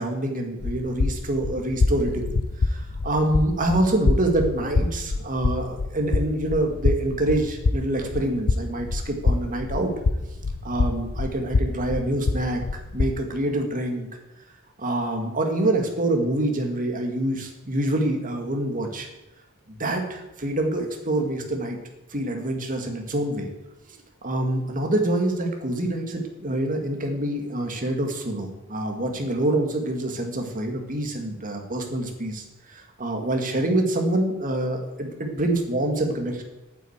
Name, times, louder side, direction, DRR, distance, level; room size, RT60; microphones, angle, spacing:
voice 1, 0.0-2.2 2.7-9.9 10.2-10.3 10.6-12.6 12.9-14.1 14.8-19.1 19.7-21.8 22.1-23.5 24.2-36.4, right 1 dB, 40° right, 3 dB, 2.1 m, -26 dB
sound 1, 0.6-13.1, left 3 dB, 70° left, 0.6 m, -26 dB
9.2 x 9.0 x 8.1 m, 0.97 s
head